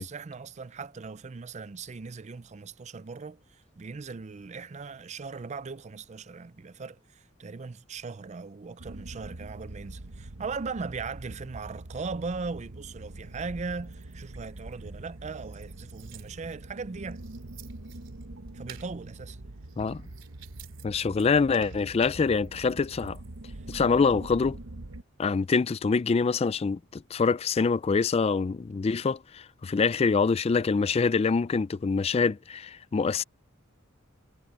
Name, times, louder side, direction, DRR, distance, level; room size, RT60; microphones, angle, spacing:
voice 1, 0.0-17.2 18.5-19.4, right 4 dB, 35° right, 0.5 m, -38 dB
sound 1, 8.8-25.0, right 2 dB, 90° right, 1.1 m, -44 dB
sound 2, 15.4-16.7 17.1-18.3 18.7-18.9 19.6-20.9 21.1-22.2, right 12 dB, 65° right, 3.9 m, -51 dB
voice 2, 20.8-23.2 23.7-24.6 25.2-33.2, left 4 dB, 30° left, 0.3 m, -25 dB
head